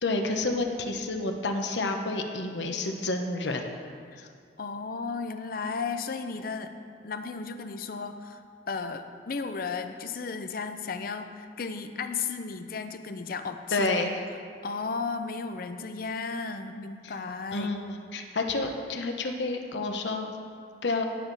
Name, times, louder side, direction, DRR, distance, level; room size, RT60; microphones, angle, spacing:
voice 1, 0.0-3.6 13.7-14.1 17.0-17.1 17.5-20.3 20.8-21.0, left 2 dB, 85° left, 4 dB, 1.0 m, -29 dB
voice 2, 4.6-6.7 7.0-8.4 8.7-13.9 14.6-17.7, left 4 dB, 55° left, 8 dB, 0.6 m, -34 dB
17.0 x 6.4 x 4.1 m, 2.2 s
head